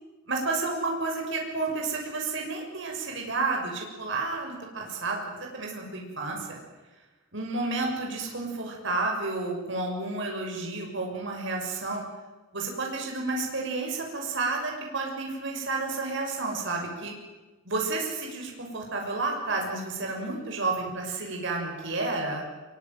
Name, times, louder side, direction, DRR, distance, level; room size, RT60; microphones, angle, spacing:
voice 1, 0.3-6.6 7.3-12.0 12.5-17.1 17.6-22.4, right 3 dB, 65° right, 0 dB, 6.3 m, -31 dB
24.5 x 23.5 x 9.2 m, 1.2 s
head